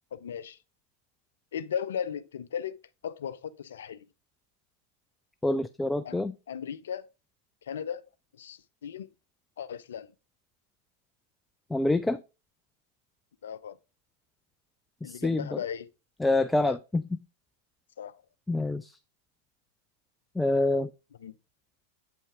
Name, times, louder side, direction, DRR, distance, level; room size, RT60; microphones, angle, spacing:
voice 1, 0.1-0.6 1.5-2.8 3.0-4.1 6.0-6.2 6.5-7.1 7.6-8.0 8.3-9.1 9.6-10.1 13.4-13.8 15.0-15.9 16.6-16.8 18.0-18.2 21.2-21.3, left 8 dB, 60° left, 0.6 m, -36 dB
voice 2, 5.4-6.3 11.7-12.2 15.0-15.6 16.2-17.0 18.5-18.9 20.4-20.9, left 2 dB, 5° left, 0.4 m, -26 dB
8.5 x 5.4 x 3.5 m
figure-of-eight pair, 90°, 0 cm